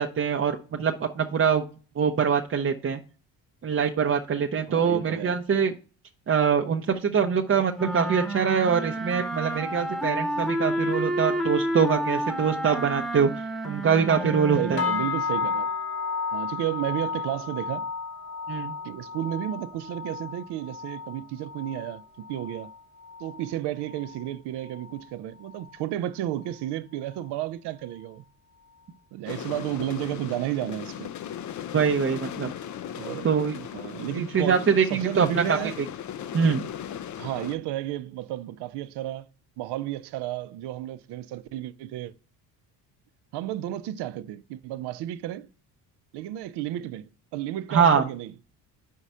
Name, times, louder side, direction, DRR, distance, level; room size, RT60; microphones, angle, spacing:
voice 1, 0.0-1.6 2.0-3.0 3.6-5.7 6.3-13.3 13.6-14.8 18.5-18.7 31.7-32.5 33.2-33.6 34.1-35.6 36.3-36.6 47.7-48.0, right 6 dB, 30° right, 0.7 m, -24 dB
voice 2, 4.7-5.4 14.6-15.7 16.3-17.9 18.8-22.7 23.2-28.2 29.1-31.1 32.9-33.3 33.7-34.6 34.9-35.7 37.2-39.3 39.6-42.1 43.3-45.5 46.1-48.3, right 13 dB, 70° right, 0.7 m, -32 dB
sound 1, 7.7-15.1, equal, ahead, 1.0 m, -30 dB
sound 2, 14.8-24.3 24.6-25.1 25.5-25.8 26.3-26.4, left 5 dB, 60° left, 1.5 m, -33 dB
sound 3, 29.3-37.6, left 10 dB, 45° left, 0.5 m, -37 dB
4.9 x 4.6 x 5.5 m
supercardioid pair, 75°, 42 cm